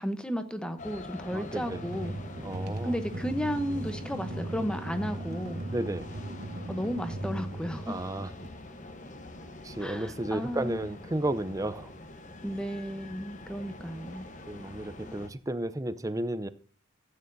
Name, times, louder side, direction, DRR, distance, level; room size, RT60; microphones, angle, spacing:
voice 1, 0.0-2.1 2.8-5.6 6.7-8.0 9.8-10.9 12.4-14.3, equal, 5° left, 9 dB, 0.9 m, -33 dB
sound 1, 0.8-15.3, left 2 dB, 35° left, 1.0 m, -45 dB
voice 2, 1.3-1.8 2.4-3.0 5.7-6.0 7.9-8.3 9.6-11.9 14.5-16.5, right 1 dB, 15° right, 13 dB, 0.5 m, -33 dB
sound 2, 1.6-8.5, right 1 dB, 50° right, 1.2 m, -38 dB
14.5 x 9.0 x 2.7 m, 0.42 s
head